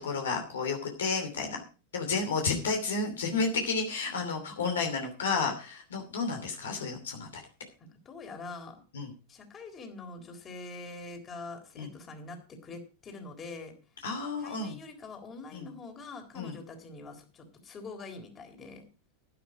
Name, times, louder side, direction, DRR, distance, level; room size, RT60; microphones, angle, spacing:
voice 1, 0.0-1.6 1.9-7.4 8.9-9.1 11.8-11.9 14.0-14.8 15.5-15.7 16.3-16.6, left 4 dB, 80° left, 4 dB, 2.8 m, -31 dB
voice 2, 7.8-8.8 9.3-13.7 14.4-18.9, left 3 dB, 30° left, 5 dB, 3.7 m, -44 dB
11.5 x 10.5 x 4.9 m, 0.34 s
hypercardioid pair, 95°, 0 cm